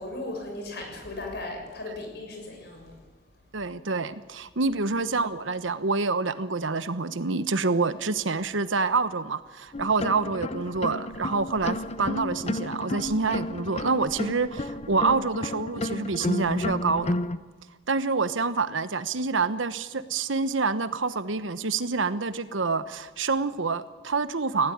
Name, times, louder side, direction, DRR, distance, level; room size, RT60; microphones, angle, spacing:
voice 1, 0.0-3.0 4.6-4.8, left 2 dB, 60° left, 2 dB, 6.8 m, -37 dB
voice 2, 3.5-17.1 17.9-24.7, right 4 dB, 85° right, 13 dB, 1.1 m, -27 dB
sound 1, 9.7-17.4, left 1 dB, 35° left, 0.7 m, -32 dB
20.0 x 16.5 x 8.8 m, 1.3 s
head